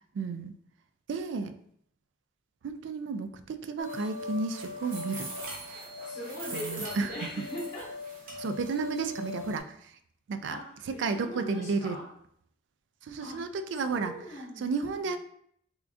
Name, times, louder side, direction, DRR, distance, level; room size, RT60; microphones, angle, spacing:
voice 1, 0.2-0.5 1.1-1.6 2.6-5.3 6.5-7.1 8.4-9.7 10.3-10.6 10.9-12.0 13.1-14.1 14.6-15.2, right 4 dB, 75° right, 9 dB, 0.3 m, -32 dB
sound 1, 3.8-9.6, left 1 dB, 45° right, 0.9 m, -40 dB
voice 2, 6.0-7.9 10.5-12.1 13.2-13.4 13.7-15.0, equal, 40° left, -5 dB, 1.4 m, -41 dB
3.5 x 3.5 x 2.5 m, 0.69 s
head